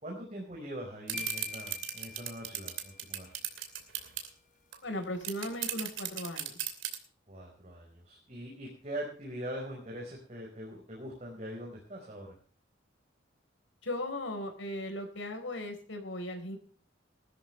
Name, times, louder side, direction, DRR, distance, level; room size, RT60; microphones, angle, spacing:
voice 1, 0.0-3.3 7.3-12.3, right 1 dB, 35° right, -1 dB, 4.8 m, -42 dB
sound 1, 1.1-3.3, left 5 dB, 40° left, 1.1 m, -45 dB
sound 2, 1.1-4.3 4.7-4.8 5.0-7.0, right 12 dB, 85° right, 2.8 m, -35 dB
voice 2, 4.8-6.6 13.8-16.6, left 1 dB, 85° left, 6 dB, 4.4 m, -37 dB
20.0 x 13.0 x 3.3 m, 0.43 s
head